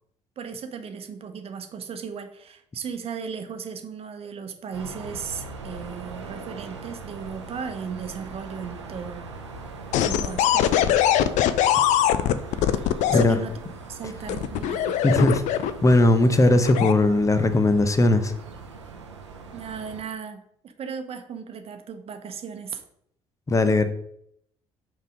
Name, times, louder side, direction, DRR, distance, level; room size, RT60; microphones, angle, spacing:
voice 1, 0.4-9.3 10.0-11.0 12.8-13.5 13.9-15.0 19.5-22.8, right 6 dB, 40° right, 7 dB, 1.0 m, -36 dB
sound 1, 4.7-20.0, right 4 dB, 85° right, 0.7 m, -41 dB
sound 2, 9.9-13.2 14.3-15.9 16.6-16.9, left 11 dB, 55° left, 0.5 m, -21 dB
voice 2, 15.0-15.4 15.8-18.3 23.5-23.9, left 2 dB, 20° left, 10 dB, 0.9 m, -18 dB
5.4 x 3.8 x 5.1 m, 0.70 s
figure-of-eight pair, 50°, 15 cm